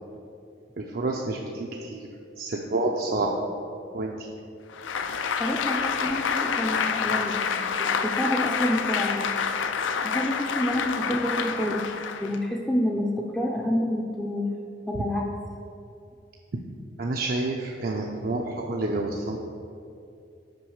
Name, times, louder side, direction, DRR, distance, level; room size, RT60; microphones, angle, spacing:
voice 1, 0.8-2.1 2.4-3.3 3.9-4.3 17.0-19.4, right 2 dB, 50° right, 0 dB, 0.5 m, -29 dB
Applause, 4.7-12.5, left 6 dB, 85° left, 0.4 m, -28 dB
voice 2, 5.4-9.2 10.0-11.8 12.2-14.4 14.9-15.3, equal, 5° left, -2 dB, 0.4 m, -28 dB
6.1 x 5.1 x 6.4 m, 2.6 s
head